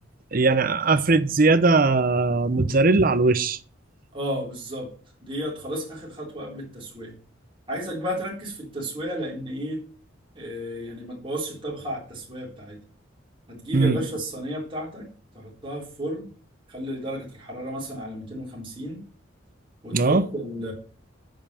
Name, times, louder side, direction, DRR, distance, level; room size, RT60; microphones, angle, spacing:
voice 1, 0.3-3.6 13.7-14.0 19.9-20.2, right 3 dB, 50° right, 0.7 m, -19 dB
voice 2, 4.1-4.9 5.2-7.2 7.7-9.8 10.3-12.8 13.5-15.1 15.3-16.3 16.7-19.0 19.8-20.7, equal, 25° right, 3.9 m, -33 dB
9.1 x 5.7 x 6.8 m
head